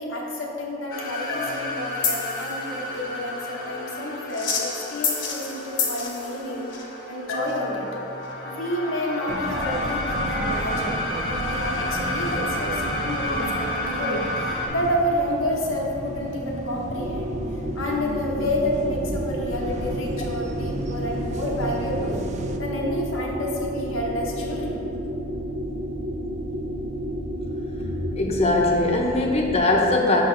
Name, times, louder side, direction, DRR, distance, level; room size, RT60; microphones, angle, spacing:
voice 1, 0.0-7.9 8.4-17.3 17.7-22.2 22.6-24.8, left 1 dB, 90° left, -3 dB, 1.0 m, -29 dB
sound 1, 0.9-14.7, left 2 dB, 65° left, 1.0 m, -29 dB
sound 2, 9.3-22.6, right 2 dB, 35° right, 0.3 m, -33 dB
sound 3, 17.0-29.6, equal, 85° right, 0.8 m, -31 dB
voice 2, 28.2-30.2, left 2 dB, 30° left, 0 dB, 0.7 m, -21 dB
5.8 x 5.4 x 3.8 m, 2.9 s
head